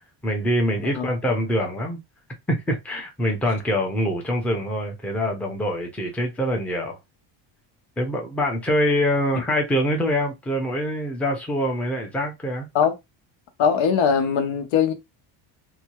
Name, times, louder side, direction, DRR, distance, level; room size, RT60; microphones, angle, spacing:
voice 1, 0.2-2.0 2.5-7.0 8.0-12.7, equal, 5° left, 0.5 m, -24 dB
voice 2, 13.6-14.9, left 7 dB, 75° left, 0.8 m, -21 dB
2.8 x 2.2 x 2.9 m
cardioid pair, 145°, 47 cm